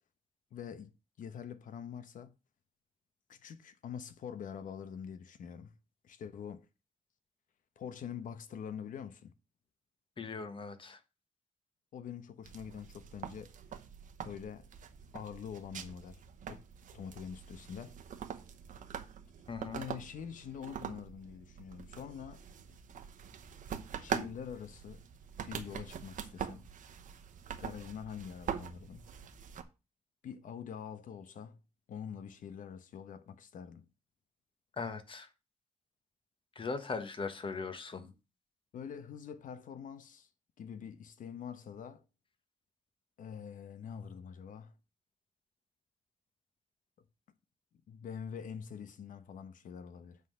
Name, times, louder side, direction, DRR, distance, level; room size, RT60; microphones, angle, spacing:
voice 1, 0.5-0.9 1.2-2.3 3.3-5.7 6.0-6.7 7.8-9.3 11.9-13.5 14.2-14.7 15.1-16.2 16.5-16.6 16.9-17.9 19.7-22.4 24.0-25.0 25.5-26.7 27.6-29.0 30.2-31.6 31.9-33.9 38.7-40.3 40.6-42.0 43.2-44.7 47.9-50.2, left 7 dB, 80° left, 0.9 m, -45 dB
voice 2, 10.2-11.0 19.5-19.8 34.7-35.3 36.5-38.1, left 4 dB, 40° left, 1.3 m, -39 dB
sound 1, 12.4-29.6, right 8 dB, 80° right, 1.0 m, -44 dB
8.1 x 3.9 x 6.5 m
cardioid pair, 100°, 13 cm